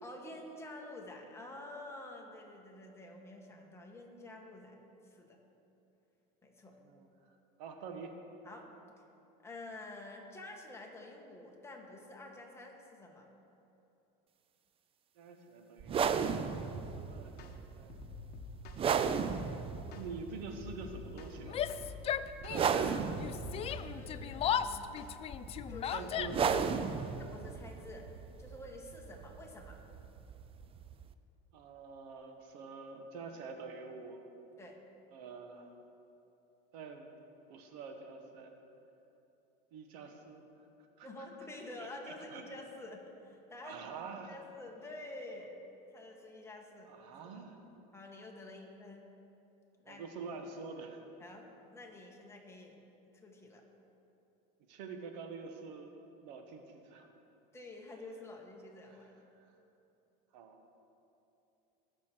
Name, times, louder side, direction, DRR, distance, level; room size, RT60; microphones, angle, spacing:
voice 1, 0.0-4.8 5.0-5.4 6.4-6.8 8.4-8.7 9.4-13.3 23.9-25.0 25.7-26.1 27.2-28.1 28.4-29.8 34.6-34.8 41.0-43.9 44.1-45.6 45.9-47.4 47.9-49.1 49.8-50.1 51.2-52.8 53.1-53.6 57.5-59.3, left 2 dB, 10° left, 0 dB, 1.7 m, -49 dB
voice 2, 7.6-8.1 15.2-16.1 16.5-17.9 19.9-21.6 22.5-23.1 25.9-27.2 31.5-34.2 35.1-35.7 36.7-37.1 37.5-38.6 39.7-40.4 41.0-41.1 41.8-42.4 43.6-44.3 46.9-47.6 49.9-51.0 54.7-56.0 56.2-57.1 60.3-60.6, right 4 dB, 80° right, 5 dB, 1.4 m, -46 dB
sound 1, 15.8-31.1, right 6 dB, 25° right, 0.5 m, -36 dB
sound 2, 16.8-17.0 17.4-17.6 17.9-19.5 19.9-20.1 20.4-22.0 22.4-22.6 22.9-24.6 25.0-25.1 25.5-26.7, left 7 dB, 50° left, 1.2 m, -49 dB
Yell, 21.4-22.9 23.2-26.6, left 9 dB, 30° left, 0.4 m, -36 dB
20.0 x 7.0 x 4.6 m, 2.9 s
supercardioid pair, 130°, 21 cm